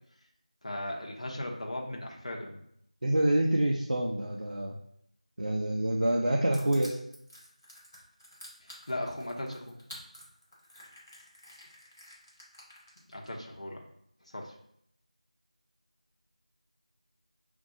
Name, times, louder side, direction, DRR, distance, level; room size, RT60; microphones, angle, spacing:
voice 1, 0.6-2.6 8.6-9.8 13.1-13.8 14.3-14.5, left 1 dB, 55° left, -2 dB, 0.9 m, -37 dB
voice 2, 3.0-4.7 5.4-7.0, right 1 dB, 80° right, 0 dB, 0.6 m, -27 dB
Crushing, 6.5-13.3, equal, 5° left, 0.5 m, -50 dB
7.0 x 2.6 x 2.6 m, 0.71 s
figure-of-eight pair, 175°, 4 cm